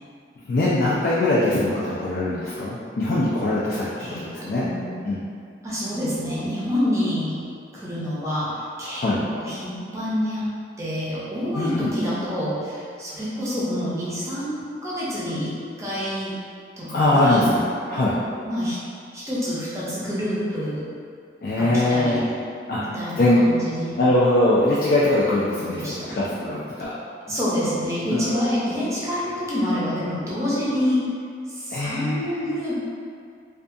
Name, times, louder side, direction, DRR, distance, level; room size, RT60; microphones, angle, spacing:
voice 1, 0.5-4.7 5.0-5.2 9.0-9.2 11.6-11.9 16.9-17.6 17.9-18.2 21.4-22.3 22.7-22.8 23.2-23.5 24.0-26.9 28.1-28.4 31.7-32.3, left 1 dB, 55° left, -8 dB, 0.3 m, -21 dB
voice 2, 4.0-5.0 5.6-7.3 7.7-10.5 10.8-15.5 15.8-16.3 16.8-17.5 18.5-18.8 19.1-20.8 21.6-22.2 22.8-24.0 25.8-26.3 27.3-31.0 31.5-32.8, equal, 15° right, -8 dB, 0.5 m, -27 dB
2.6 x 2.3 x 2.5 m, 2.2 s
head